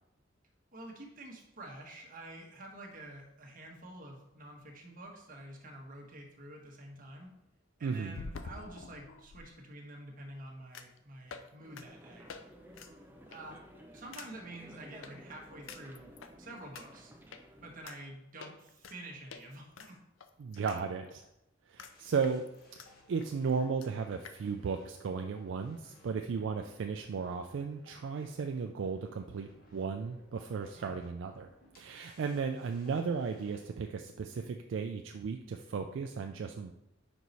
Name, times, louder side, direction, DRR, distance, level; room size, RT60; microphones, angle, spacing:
voice 1, 0.7-7.3 7.8-12.3 13.3-13.6 13.9-16.1 16.4-17.1 17.6-20.0 30.7-31.0, right 1 dB, 45° right, 1 dB, 1.1 m, -48 dB
sound 1, 5.6-5.7 8.1-9.4 10.7-11.0 11.3-11.5 11.8-11.9 12.3-12.4 12.7-12.9 13.3-13.6 14.1-14.3 15.0-15.1 15.7-16.3 16.7-16.8 17.3-17.4 17.9-18.0 18.4-19.0 19.3-19.4 19.8-20.8 21.1-21.2 21.8-21.9 22.2-22.9 23.2-23.3 23.5-23.6 23.8-23.9 24.2-24.4, left 4 dB, 75° left, 0.5 m, -47 dB
voice 2, 7.8-8.2 20.4-21.2 21.7-22.4 23.1-31.5 31.8-36.7, right 5 dB, 70° right, 5 dB, 0.4 m, -35 dB
sound 2, 11.6-17.8, equal, 10° right, 0.6 m, -54 dB
sound 3, 21.9-33.7, left 1 dB, 50° left, 1.2 m, -62 dB
5.2 x 4.6 x 4.0 m, 0.86 s
head